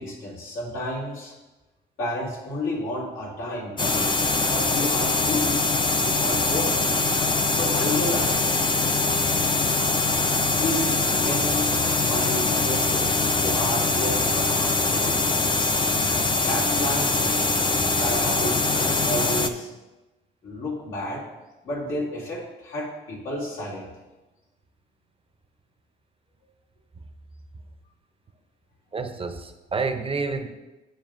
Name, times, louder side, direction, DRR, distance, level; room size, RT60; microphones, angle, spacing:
voice 1, 0.0-1.4 2.0-6.9 7.5-8.4 10.4-11.7 12.0-15.6 16.4-17.6 17.9-19.7 20.4-21.2 21.6-23.9, left 1 dB, 85° left, -6 dB, 2.6 m, -31 dB
sound 1, 3.8-19.5, left 3 dB, 25° left, 0.5 m, -23 dB
voice 2, 28.9-30.5, right 4 dB, 30° right, 8 dB, 0.6 m, -29 dB
9.0 x 6.9 x 2.5 m, 1.1 s
cardioid pair, 90°, 20 cm